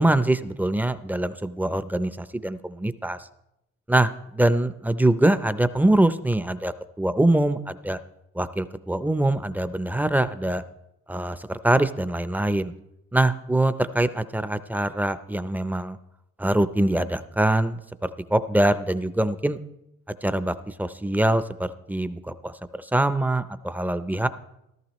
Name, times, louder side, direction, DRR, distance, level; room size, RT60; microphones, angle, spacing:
voice 1, 0.0-3.2 3.9-8.0 8.4-10.6 11.1-12.7 13.1-16.0 16.4-19.6 20.2-22.5 22.9-24.3, right 1 dB, 5° right, 12 dB, 0.5 m, -23 dB
15.0 x 13.5 x 3.1 m, 0.86 s
cardioid pair, 90°, 30 cm